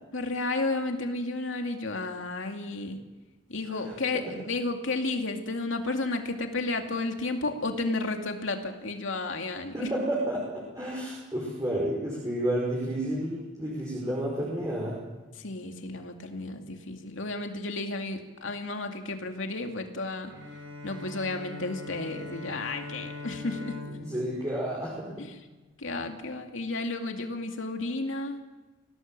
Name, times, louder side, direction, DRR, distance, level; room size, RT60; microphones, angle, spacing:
voice 1, 0.1-3.0 3.5-9.9 15.4-20.3 20.8-23.9 25.2-25.4 25.8-28.4, left 2 dB, 85° left, 4 dB, 2.4 m, -32 dB
voice 2, 3.7-4.3 9.7-15.0 24.0-25.2, right 1 dB, 15° right, -3 dB, 5.0 m, -31 dB
Bowed string instrument, 20.3-25.7, left 2 dB, 90° right, 4.8 m, -42 dB
25.0 x 18.0 x 7.6 m, 1.2 s
head